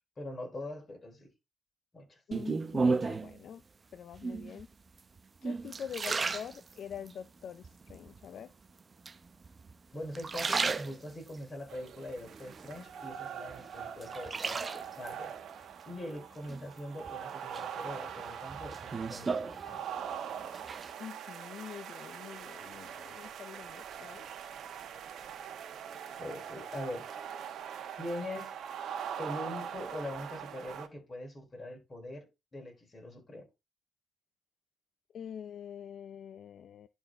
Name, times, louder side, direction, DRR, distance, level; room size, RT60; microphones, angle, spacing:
voice 1, 0.2-1.3 1.9-2.2 9.9-15.3 15.9-19.8 26.2-27.1 28.0-28.5 29.2-32.3 32.5-33.4, left 1 dB, 30° left, 4.7 m, -42 dB
voice 2, 2.3-3.6 3.9-4.7 5.4-8.5 21.0-24.3 35.1-36.9, left 8 dB, 60° left, 0.5 m, -45 dB
sound 1, 2.3-3.4 4.1-4.6 5.2-7.1 7.6-8.2 9.1-9.7 10.1-11.4 11.9-13.1 13.5-15.1 16.5-17.1 17.5-20.2 20.4-20.9, right 4 dB, 35° right, 0.7 m, -34 dB
sound 2, 11.7-30.9, right 8 dB, 70° right, 1.4 m, -42 dB
11.0 x 4.4 x 3.9 m
cardioid pair, 90°, 0 cm